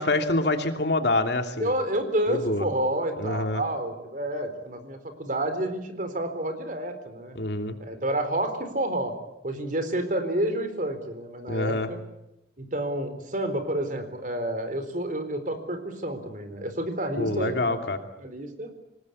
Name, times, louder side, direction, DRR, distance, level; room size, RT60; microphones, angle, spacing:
voice 1, 0.0-1.7 2.3-2.7 3.2-3.6 7.3-7.7 11.5-11.9 17.2-18.0, left 2 dB, 65° left, 5 dB, 2.7 m, -26 dB
voice 2, 1.6-7.4 7.8-9.1 9.4-12.0 12.6-17.8 18.2-18.7, right 1 dB, 45° right, 9 dB, 4.1 m, -29 dB
26.5 x 19.5 x 8.5 m, 0.87 s
head